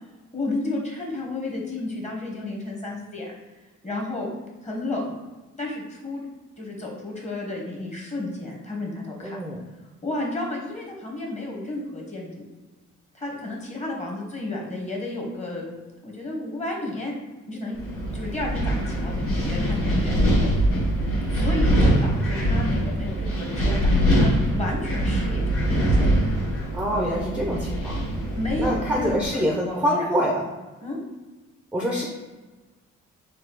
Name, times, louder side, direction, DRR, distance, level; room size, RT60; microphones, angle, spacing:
voice 1, 0.3-3.3 3.8-4.3 4.6-5.2 5.6-6.2 6.6-9.4 10.0-12.5 13.1-15.7 16.0-17.1 17.5-17.8 18.1-20.5 21.3-26.1 28.3-30.1 30.8-31.0, left 2 dB, 25° left, -1 dB, 1.2 m, -32 dB
voice 2, 9.2-9.6 26.7-27.9 28.6-30.5 31.7-32.0, equal, 5° right, -2 dB, 0.6 m, -25 dB
Wind, 17.7-29.2, equal, 50° left, 1.5 m, -23 dB
4.2 x 2.3 x 3.9 m, 1.2 s
cardioid pair, 90°, 30 cm